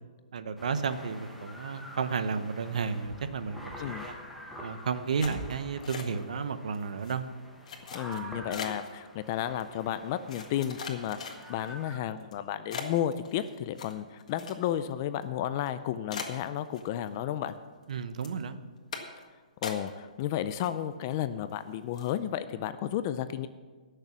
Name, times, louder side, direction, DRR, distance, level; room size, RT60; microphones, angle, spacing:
voice 1, 0.3-3.6 4.0-4.1 4.6-7.3 17.9-18.6, right 5 dB, 60° right, 11 dB, 0.8 m, -32 dB
sound 1, 0.6-12.0, equal, ahead, 0.9 m, -46 dB
sound 2, 5.2-6.4 6.7-7.1 7.7-8.9 9.6-9.7 10.3-11.7 12.2-12.3 12.7-14.9 15.2-15.3 15.7-15.8 16.1-17.2 17.5-17.9 18.2-18.4 18.9-19.2 19.6-20.2 20.5-21.1 21.5-21.6 21.9-22.2, left 5 dB, 60° left, 1.7 m, -40 dB
voice 2, 7.9-17.5 19.6-23.5, left 11 dB, 25° left, 12 dB, 0.3 m, -32 dB
16.0 x 6.7 x 6.0 m, 1.4 s
hypercardioid pair, 170°, 4 cm